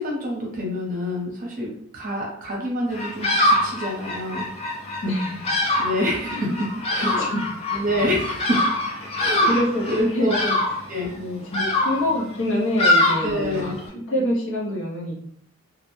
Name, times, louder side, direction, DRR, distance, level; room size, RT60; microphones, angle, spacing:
voice 1, 0.0-4.5 5.8-7.3 7.7-8.6 9.1-10.4 10.9-11.1 13.2-13.8 14.1-14.3, left 1 dB, 40° right, -2 dB, 0.7 m, -27 dB
Bird vocalization bird call bird song, 2.9-13.9, left 1 dB, 25° left, 0.5 m, -24 dB
voice 2, 5.0-5.4 6.3-6.5 6.9-7.4 9.0-9.1 9.4-10.6 11.2-15.2, left 1 dB, 60° left, -3 dB, 0.7 m, -26 dB
2.4 x 2.1 x 3.0 m, 0.65 s
head